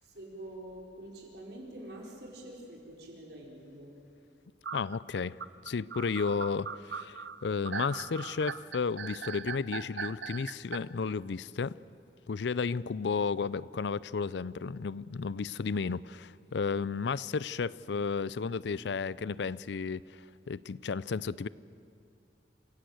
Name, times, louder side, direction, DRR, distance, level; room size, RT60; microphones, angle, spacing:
voice 1, 0.0-3.9, right 1 dB, 65° right, -1 dB, 4.7 m, -46 dB
sound 1, 4.6-10.8, right 6 dB, 90° right, 0.7 m, -39 dB
voice 2, 4.7-5.4 5.6-11.8 12.3-20.2 20.5-21.5, left 5 dB, 75° left, 20 dB, 0.5 m, -33 dB
28.0 x 16.5 x 7.9 m, 2.6 s
head